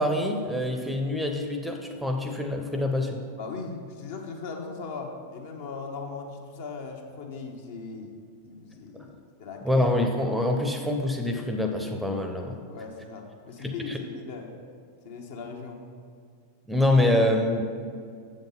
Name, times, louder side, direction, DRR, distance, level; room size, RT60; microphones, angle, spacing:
voice 1, 0.0-3.2 8.9-9.1 9.6-12.6 13.6-14.0 16.7-17.7, left 1 dB, 5° right, 4 dB, 0.7 m, -25 dB
voice 2, 3.4-8.1 8.4-9.9 12.7-14.5 15.0-15.8, left 4 dB, 55° left, 2 dB, 1.1 m, -38 dB
7.5 x 5.2 x 5.5 m, 2.2 s
figure-of-eight pair, 90°, 0 cm